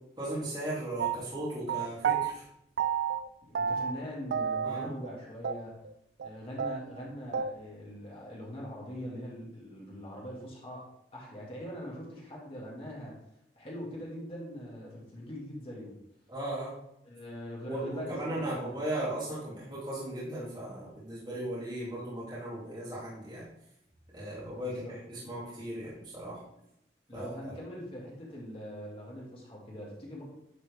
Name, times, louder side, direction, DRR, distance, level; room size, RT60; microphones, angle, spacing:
voice 1, 0.2-2.5 4.6-4.9 16.3-16.7 17.6-23.5 24.1-26.4 27.1-27.5, right 1 dB, 25° right, -10 dB, 2.8 m, -37 dB
sound 1, 1.0-2.3 2.8-3.3 3.5-4.0 4.3-5.1 5.4-5.6 5.8-5.9 6.2-6.3 6.6-7.5, right 7 dB, 75° right, 0.3 m, -31 dB
voice 2, 3.4-5.7 6.2-10.9 11.1-13.2 13.6-16.0 17.0-18.7 24.6-25.0 27.1-30.2, equal, 35° left, -4 dB, 1.9 m, -42 dB
9.7 x 4.3 x 3.4 m, 0.79 s
head